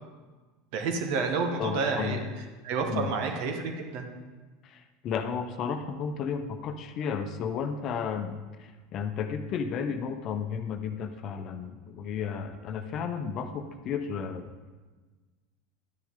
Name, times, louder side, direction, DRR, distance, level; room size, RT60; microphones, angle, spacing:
voice 1, 0.7-2.2 2.6-4.1, right 4 dB, 55° right, 4 dB, 1.6 m, -29 dB
voice 2, 1.6-2.2 2.8-3.2 4.6-14.5, left 6 dB, 45° left, 8 dB, 0.9 m, -33 dB
12.0 x 10.0 x 3.8 m, 1.3 s
figure-of-eight pair, 80°, 0 cm